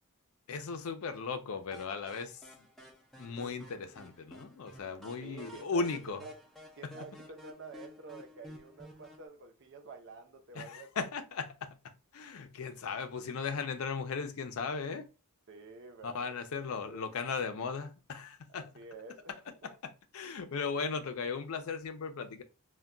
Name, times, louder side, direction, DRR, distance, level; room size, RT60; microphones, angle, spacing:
voice 1, 0.5-2.7 3.2-6.2 6.8-6.9 10.5-11.8 12.1-15.1 16.0-18.7 19.6-22.4, left 5 dB, 70° left, 0.4 m, -37 dB
sound 1, 1.7-9.3, equal, ahead, 0.4 m, -53 dB
voice 2, 5.2-6.4 6.7-10.9 15.5-16.5 16.8-17.1 18.5-19.3, right 3 dB, 55° right, 0.6 m, -49 dB
2.2 x 2.2 x 3.6 m
head